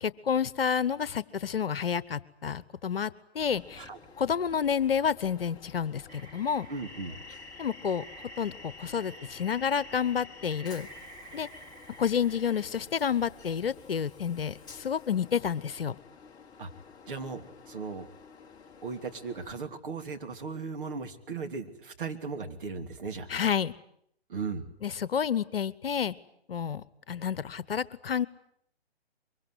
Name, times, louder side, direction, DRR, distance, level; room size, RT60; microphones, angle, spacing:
voice 1, 0.0-3.9 4.2-6.7 7.6-8.0 8.4-10.9 11.3-11.5 12.0-16.0 23.3-23.7 24.8-26.1 26.5-28.3, left 7 dB, 60° left, 18 dB, 1.1 m, -29 dB
Train, 3.4-19.5, left 5 dB, 10° left, 1.6 m, -51 dB
sound 1, 6.1-12.7, right 2 dB, 20° right, 3.3 m, -50 dB
voice 2, 6.7-7.2 16.6-16.7 17.0-18.1 18.8-23.3 24.3-24.7, right 4 dB, 55° right, 5 dB, 3.1 m, -37 dB
23.5 x 23.5 x 9.8 m, 0.70 s
figure-of-eight pair, 135°, 32 cm